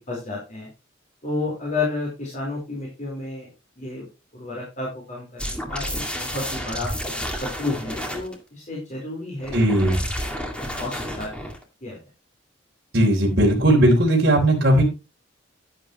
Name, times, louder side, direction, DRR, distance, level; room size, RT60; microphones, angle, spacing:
voice 1, 0.1-0.7 1.2-3.5 3.8-4.0 4.3-6.9 7.4-9.5 10.5-11.3 11.8-12.0, left 3 dB, 40° left, -3 dB, 4.3 m, -31 dB
sound 1, 5.4-8.4 9.4-11.6, equal, 5° left, 2.2 m, -30 dB
voice 2, 9.5-10.0 12.9-14.8, right 1 dB, 60° right, -2 dB, 3.6 m, -17 dB
11.0 x 11.0 x 3.1 m, 0.27 s
head